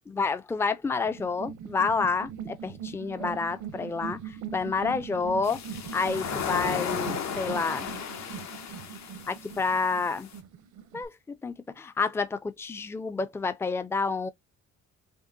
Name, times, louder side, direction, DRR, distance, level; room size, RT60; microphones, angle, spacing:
voice 1, 0.1-5.6 5.9-7.9 9.3-10.3 10.9-14.3, left 4 dB, 10° left, 0.4 m, -29 dB
sound 1, 1.0-11.0, right 8 dB, 80° right, 0.8 m, -41 dB
sound 2, 5.4-10.4, left 8 dB, 65° left, 1.1 m, -35 dB
5.3 x 2.1 x 2.6 m
cardioid pair, 90°, 30 cm